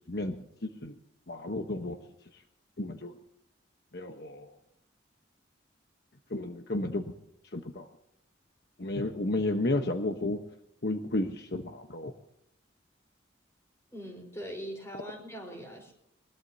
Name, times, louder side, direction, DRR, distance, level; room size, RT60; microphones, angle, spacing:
voice 1, 0.6-1.0 1.3-2.0 2.3-2.4 2.8-3.2 3.9-4.6 6.3-7.1 7.5-7.9 8.8-10.4 10.8-12.1, left 2 dB, 55° left, 5 dB, 1.1 m, -32 dB
voice 2, 13.9-15.9, equal, 15° left, 2 dB, 4.3 m, -41 dB
21.0 x 21.0 x 2.8 m, 0.78 s
head